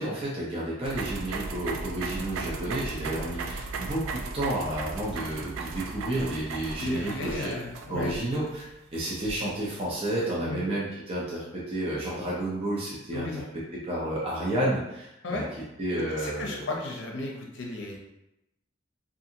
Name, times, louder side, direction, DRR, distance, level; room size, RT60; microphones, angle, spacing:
voice 1, 0.0-7.5 7.9-15.4 15.8-16.7, right 1 dB, 30° right, -6 dB, 0.6 m, -31 dB
sound 1, 0.8-10.1, right 3 dB, 85° right, 0.3 m, -37 dB
voice 2, 6.8-8.2 10.4-10.7 13.1-13.4 15.2-15.5 16.2-18.0, left 2 dB, 65° left, -1 dB, 0.6 m, -34 dB
2.6 x 2.5 x 2.7 m, 0.89 s
head